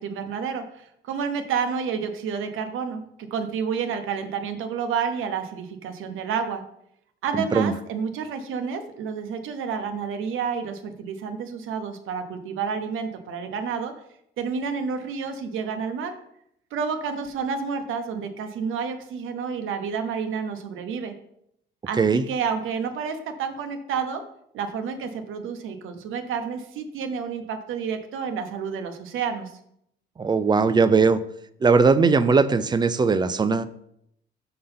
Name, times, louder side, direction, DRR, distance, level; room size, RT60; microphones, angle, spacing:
voice 1, 0.0-6.6 7.2-13.9 14.4-16.1 16.7-21.1 21.9-24.2 24.5-29.5, right 6 dB, 75° right, 7 dB, 1.0 m, -30 dB
voice 2, 30.2-31.2 31.6-33.7, right 4 dB, 20° right, 13 dB, 0.3 m, -19 dB
6.7 x 3.9 x 5.5 m, 0.74 s
cardioid pair, 130°, 21 cm